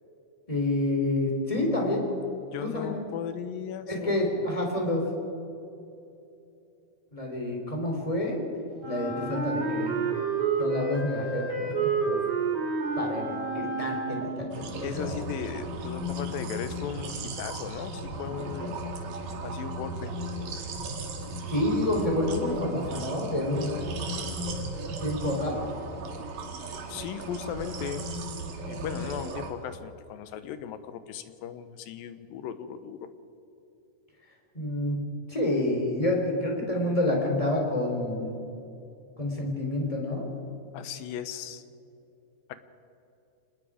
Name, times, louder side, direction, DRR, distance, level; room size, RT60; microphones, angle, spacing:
voice 1, 0.5-2.1 2.6-3.0 3.9-5.1 7.1-8.4 8.8-10.0 10.6-12.3 12.9-15.1 21.5-23.8 25.0-25.6 34.5-35.0 35.3-38.3 39.2-40.3, left 1 dB, 10° left, 0 dB, 3.1 m, -28 dB
voice 2, 2.5-4.7 14.8-18.8 19.4-20.1 26.9-28.1 28.7-33.1 40.7-41.6 42.5-42.6, left 8 dB, 75° left, 11 dB, 2.5 m, -37 dB
Wind instrument woodwind instrument, 8.8-14.6, right 4 dB, 30° right, 2.9 m, -29 dB
sound 1, 14.5-29.5, right 1 dB, 65° right, 3.3 m, -36 dB
26.5 x 20.0 x 5.0 m, 2.8 s
omnidirectional pair, 4.3 m